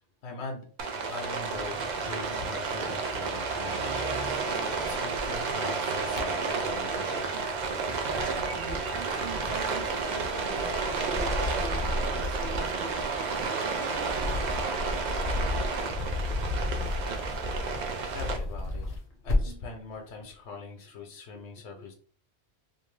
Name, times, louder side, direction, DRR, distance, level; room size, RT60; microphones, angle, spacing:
voice 1, 0.2-0.7 1.1-7.5 18.1-18.9 19.2-21.9, left 3 dB, 90° left, 2 dB, 0.9 m, -42 dB
Rain, 0.8-18.4, right 4 dB, 55° right, 0.5 m, -31 dB
sound 1, 1.5-3.7 3.9-5.5 5.9-7.0 7.5-19.7, left 2 dB, 45° left, 0.6 m, -35 dB
voice 2, 7.9-8.8 9.4-14.6, right 3 dB, 85° right, 2 dB, 1.0 m, -42 dB
2.6 x 2.3 x 3.1 m, 0.43 s
omnidirectional pair, 1.1 m